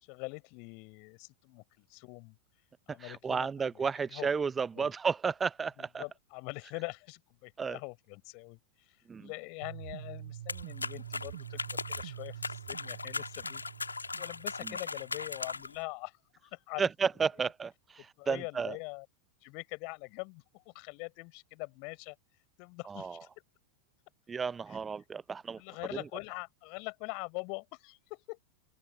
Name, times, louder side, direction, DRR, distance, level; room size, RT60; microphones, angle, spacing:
voice 1, 0.0-2.4 2.9-3.5 3.7-4.3 4.8-4.9 5.8-13.7 14.2-16.9 17.4-17.5 18.0-19.1 19.4-22.2 22.6-23.3 24.7-24.8 25.6-28.4, left 34 dB, 45° left, 4.5 m, -43 dB
voice 2, 3.0-6.0 7.6-7.8 9.1-9.3 16.8-18.8 22.9-23.2 24.3-25.6, right 5 dB, 15° right, 0.7 m, -32 dB
sound 1, 9.6-15.6, right 12 dB, 60° right, 1.5 m, -46 dB
sound 2, 10.5-15.8, left 4 dB, 80° left, 1.7 m, -39 dB
open air
figure-of-eight pair, 90°, 0 cm